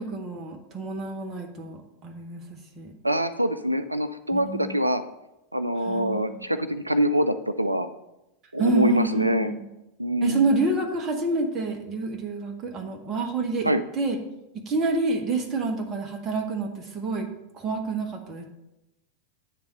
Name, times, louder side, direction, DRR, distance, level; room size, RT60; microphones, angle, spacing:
voice 1, 0.0-2.9 4.3-4.8 5.8-6.5 8.6-9.6 10.2-14.2 14.6-17.3 17.5-18.4, right 3 dB, 25° right, 2 dB, 1.2 m, -28 dB
voice 2, 3.0-5.0 5.5-7.9 8.5-9.5 10.0-10.5 13.6-13.8, equal, 85° right, 11 dB, 0.3 m, -24 dB
8.8 x 3.6 x 6.5 m, 0.93 s
figure-of-eight pair, 90°, 0 cm